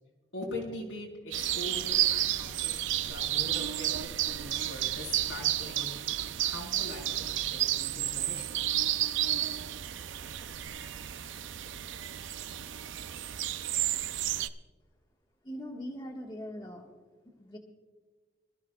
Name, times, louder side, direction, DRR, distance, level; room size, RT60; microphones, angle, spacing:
voice 1, 0.3-5.9 6.4-8.9, left 1 dB, 90° left, -2 dB, 4.6 m, -42 dB
sound 1, 1.3-14.5, right 13 dB, 75° right, 0.5 m, -31 dB
voice 2, 15.4-16.9 17.2-17.6, equal, 25° left, -1 dB, 1.6 m, -41 dB
25.5 x 14.0 x 2.4 m, 1.4 s
head